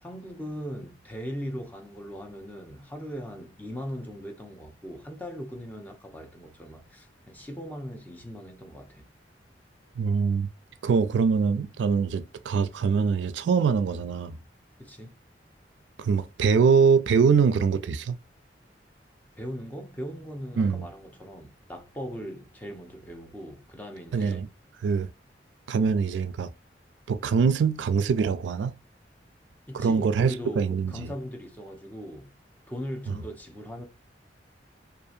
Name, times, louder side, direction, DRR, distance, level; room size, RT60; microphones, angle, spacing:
voice 1, 0.0-9.0 14.8-15.1 19.4-24.4 25.8-25.9 29.7-32.3 32.7-33.8, equal, 10° left, 0.6 m, -39 dB
voice 2, 10.0-10.5 10.8-14.4 16.0-18.2 20.6-20.9 24.1-24.5 24.8-25.1 25.7-26.5 27.1-28.7 29.7-31.1 33.1-33.2, right 5 dB, 85° right, 0.3 m, -23 dB
2.7 x 2.4 x 2.4 m
head